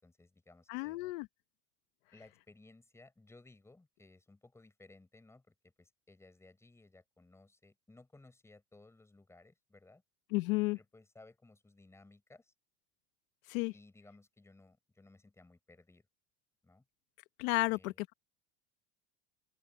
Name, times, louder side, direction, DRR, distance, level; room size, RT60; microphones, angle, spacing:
voice 1, 0.0-1.0 2.1-10.0 10.7-12.5 13.7-16.1 16.6-16.8 17.6-18.0, left 2 dB, 5° left, 5.9 m, -60 dB
voice 2, 0.7-1.3 10.3-10.8 13.5-13.7 17.4-18.1, left 23 dB, 75° left, 1.1 m, -32 dB
cardioid pair, 170°, 40 cm